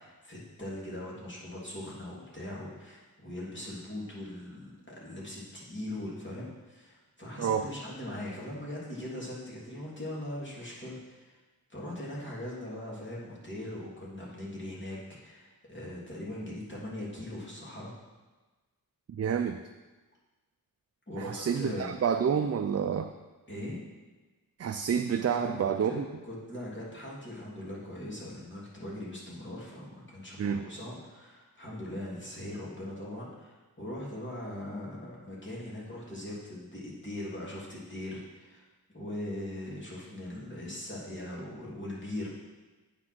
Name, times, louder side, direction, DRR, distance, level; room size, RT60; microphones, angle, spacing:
voice 1, 0.0-11.4 11.7-17.9 21.1-21.9 23.5-23.8 25.3-38.6 38.9-42.3, left 1 dB, 30° left, -6 dB, 2.9 m, -40 dB
voice 2, 7.4-7.7 19.2-19.6 21.2-23.1 24.6-26.0 30.4-30.6, right 7 dB, 45° right, 7 dB, 0.4 m, -29 dB
8.7 x 6.1 x 6.0 m, 1.2 s
wide cardioid pair, 90°, 37 cm